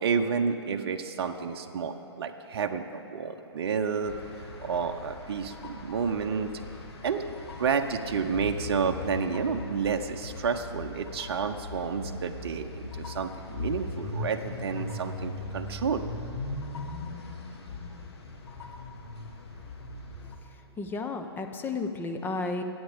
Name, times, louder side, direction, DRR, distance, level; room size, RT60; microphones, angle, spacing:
voice 1, 0.0-4.2 4.6-6.5 7.0-16.0, right 6 dB, 60° right, 6 dB, 0.7 m, -30 dB
sound 1, 4.0-20.4, left 3 dB, 65° left, 1.8 m, -39 dB
voice 2, 20.8-22.6, left 3 dB, 15° left, 5 dB, 0.8 m, -32 dB
22.0 x 8.8 x 3.5 m, 2.9 s
figure-of-eight pair, 120°, 14 cm